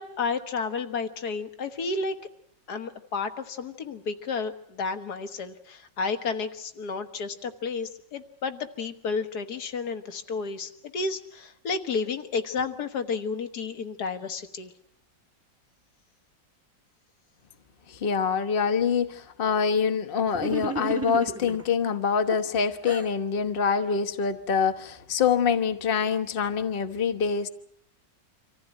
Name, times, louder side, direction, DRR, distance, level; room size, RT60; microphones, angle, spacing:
voice 1, 0.0-2.2 2.7-14.7, left 4 dB, 65° left, 9 dB, 1.8 m, -31 dB
voice 2, 17.9-27.5, left 6 dB, 35° left, 8 dB, 1.1 m, -25 dB
sound 1, 20.3-21.7 22.3-23.1, right 2 dB, 10° right, 1.2 m, -33 dB
25.5 x 15.0 x 9.1 m, 0.69 s
omnidirectional pair, 1.9 m